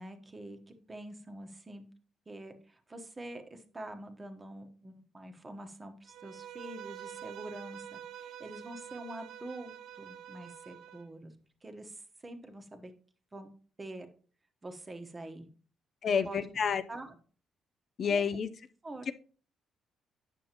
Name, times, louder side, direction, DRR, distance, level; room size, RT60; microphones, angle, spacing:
voice 1, 0.0-1.8 2.3-11.3 11.6-12.9 13.3-13.5 13.8-14.1 14.6-15.5 16.2-17.1 18.1-18.3 18.8-19.1, right 1 dB, 25° right, 1.1 m, -46 dB
Bowed string instrument, 6.1-11.1, right 10 dB, 80° right, 0.5 m, -47 dB
voice 2, 16.0-16.8 18.0-18.5, left 6 dB, 55° left, 0.5 m, -29 dB
8.9 x 6.2 x 2.9 m
cardioid pair, 90°, 0 cm